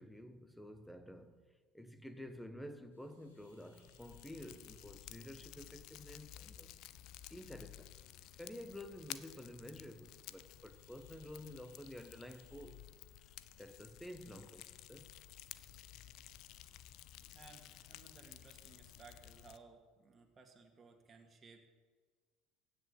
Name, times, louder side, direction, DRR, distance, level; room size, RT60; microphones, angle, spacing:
voice 1, 0.0-1.4 1.7-6.7 7.3-7.9 8.4-12.9 13.6-15.1, left 1 dB, 5° left, 1.5 m, -51 dB
sound 1, 2.9-17.1, left 3 dB, 90° left, 2.7 m, -75 dB
Fire, 3.4-19.6, left 13 dB, 60° left, 0.6 m, -54 dB
voice 2, 17.3-21.7, right 4 dB, 30° right, 2.3 m, -60 dB
16.0 x 6.6 x 9.0 m
hypercardioid pair, 70°, 0 cm